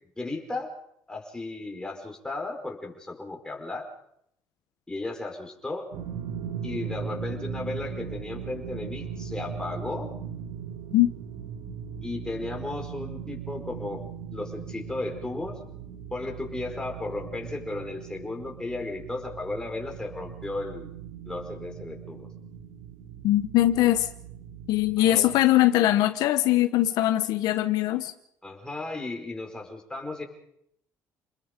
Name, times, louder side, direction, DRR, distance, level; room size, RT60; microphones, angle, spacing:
voice 1, 0.2-0.7 1.1-3.8 4.9-5.9 6.6-10.1 12.0-14.0 14.3-15.6 16.1-20.9 21.2-22.3 25.0-25.3 28.4-30.2, left 2 dB, 10° left, 2 dB, 4.8 m, -35 dB
sound 1, 5.9-25.4, right 7 dB, 90° right, 2.8 m, -39 dB
voice 2, 23.2-24.1 24.7-28.1, left 14 dB, 80° left, 10 dB, 1.0 m, -21 dB
29.0 x 20.5 x 5.2 m, 0.74 s
cardioid pair, 115°, 7 cm